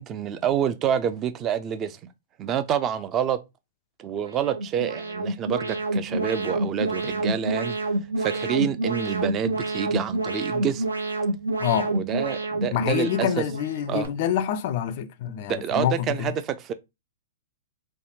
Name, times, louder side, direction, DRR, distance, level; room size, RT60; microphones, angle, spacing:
voice 1, 0.0-2.0 2.4-3.4 4.0-7.8 8.2-10.8 11.9-13.4 13.9-14.1 15.3-16.7, right 9 dB, 30° right, 0.4 m, -27 dB
Alarm, 4.2-14.1, right 2 dB, 85° right, 0.7 m, -28 dB
voice 2, 11.6-11.9 12.7-16.3, left 10 dB, 50° left, 0.4 m, -26 dB
3.3 x 2.2 x 2.8 m
figure-of-eight pair, 110°, 0 cm